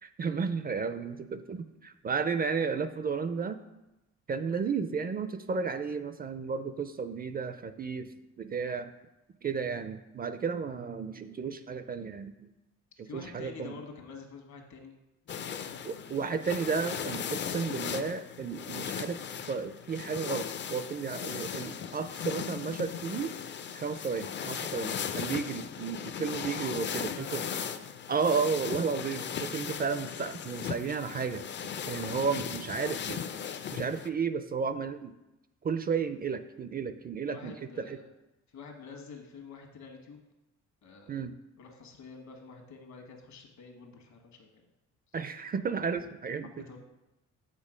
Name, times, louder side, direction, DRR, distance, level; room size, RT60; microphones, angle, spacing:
voice 1, 0.0-3.6 4.3-8.1 8.4-8.9 9.4-12.5 13.0-13.7 15.8-19.2 19.5-23.3 23.7-27.4 28.1-31.5 31.9-33.2 33.7-35.1 35.6-38.0 41.1-41.3 45.1-46.7, right 5 dB, 30° right, 11 dB, 0.4 m, -33 dB
voice 2, 13.0-15.0 15.2-16.3 26.7-27.8 32.4-32.6 33.0-33.1 37.2-38.1 38.5-40.2 40.8-41.2 41.6-44.7 46.4-46.8, left 5 dB, 65° left, 3 dB, 1.4 m, -48 dB
sound 1, 15.3-34.1, left 7 dB, 40° left, 0.4 m, -37 dB
7.4 x 4.0 x 5.0 m, 0.97 s
cardioid pair, 90°, 30 cm